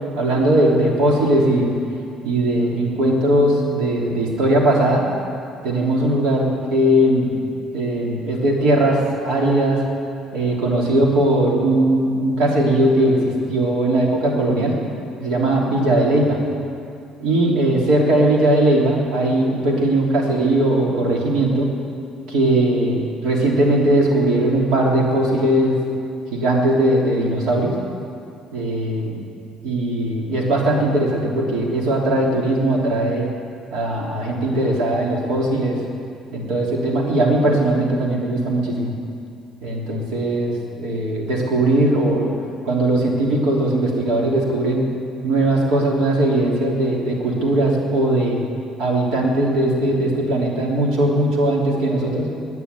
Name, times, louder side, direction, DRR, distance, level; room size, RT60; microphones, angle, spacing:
voice 1, 0.1-1.7 2.2-5.0 5.6-7.4 7.7-9.8 10.3-14.8 15.2-16.4 17.2-21.7 22.3-25.7 26.3-27.7 28.5-29.2 29.6-33.3 33.7-35.8 36.3-38.9 39.6-42.3 42.6-44.8 45.2-48.4 48.8-52.3, right 1 dB, 80° right, -2 dB, 3.1 m, -19 dB
10.5 x 9.4 x 9.7 m, 2.5 s
cardioid pair, 115°, 0 cm